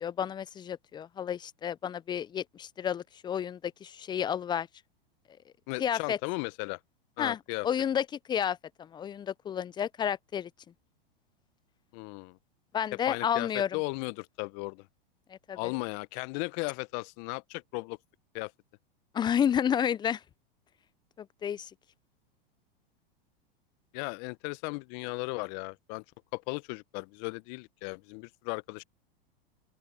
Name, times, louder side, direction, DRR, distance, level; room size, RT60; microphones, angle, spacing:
voice 1, 0.0-4.7 5.8-6.2 7.2-7.4 7.6-10.5 12.7-13.7 15.3-15.6 19.1-20.2 21.2-21.7, left 9 dB, 15° left, 0.4 m, -31 dB
voice 2, 5.7-6.8 7.2-7.7 11.9-12.4 13.1-14.9 15.5-18.0 18.3-18.5 23.9-26.0 26.3-28.8, left 29 dB, 50° left, 0.9 m, -36 dB
open air
hypercardioid pair, 105°, 29 cm